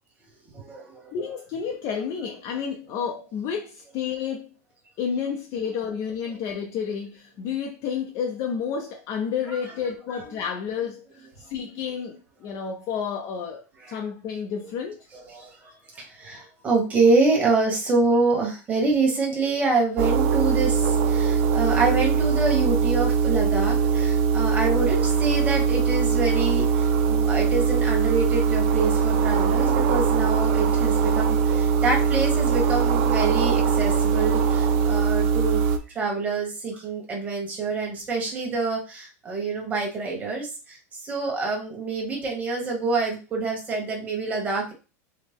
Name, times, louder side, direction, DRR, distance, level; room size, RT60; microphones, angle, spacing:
voice 1, 0.5-1.1 5.6-5.7 9.5-9.6 10.1-10.2 13.8-14.0 15.1-35.6 35.9-40.8 41.0-44.7, right 3 dB, 15° right, 1.2 m, -26 dB
voice 2, 1.1-4.5 5.0-15.1, left 7 dB, 40° left, 0.4 m, -30 dB
sound 1, 20.0-35.8, right 6 dB, 55° right, 0.6 m, -21 dB
4.2 x 2.0 x 3.4 m
supercardioid pair, 150°, 9 cm